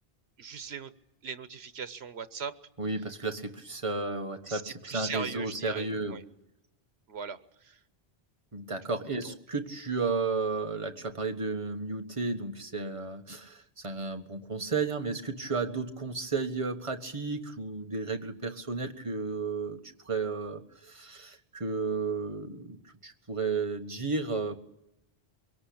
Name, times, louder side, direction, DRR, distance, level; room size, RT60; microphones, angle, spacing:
voice 1, 0.4-0.9 1.2-2.6 4.5-6.2 7.1-7.8 9.2-9.3, right 6 dB, 85° right, 13 dB, 1.3 m, -39 dB
voice 2, 2.8-6.2 8.5-22.8 23.0-24.6, right 4 dB, 30° right, 5 dB, 1.5 m, -33 dB
23.5 x 18.0 x 8.6 m, 0.86 s
omnidirectional pair, 1.0 m